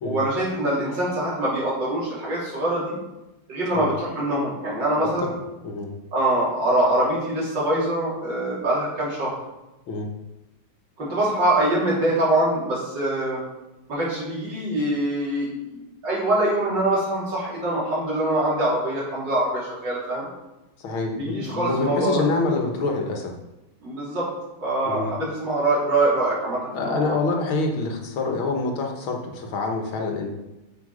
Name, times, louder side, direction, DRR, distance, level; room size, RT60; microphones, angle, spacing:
voice 1, 0.0-3.0 3.5-5.3 6.1-9.3 11.0-13.4 13.9-20.3 21.1-22.2 23.8-24.3 24.6-27.2, right 1 dB, 60° right, -6 dB, 4.2 m, -24 dB
voice 2, 20.8-23.3 24.9-25.1 26.7-30.3, left 3 dB, 80° left, 2 dB, 2.1 m, -26 dB
8.2 x 7.1 x 5.0 m, 0.98 s
omnidirectional pair, 2.2 m